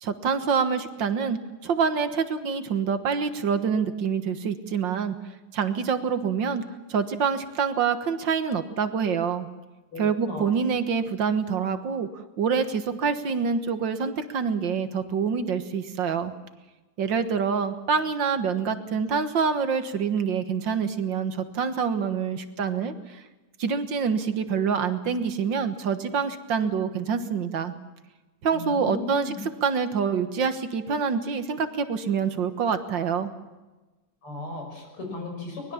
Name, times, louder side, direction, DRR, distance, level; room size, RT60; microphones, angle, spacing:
voice 1, 0.0-5.1 5.5-6.6 6.9-9.5 10.0-12.1 12.4-16.3 17.0-22.9 23.6-27.7 28.4-29.3 29.6-33.3, right 6 dB, 60° right, 10 dB, 2.0 m, -26 dB
voice 2, 9.9-10.4 28.5-29.4 34.2-35.7, left 2 dB, 90° left, 1 dB, 7.2 m, -36 dB
23.5 x 20.0 x 7.2 m, 1.2 s
omnidirectional pair, 2.4 m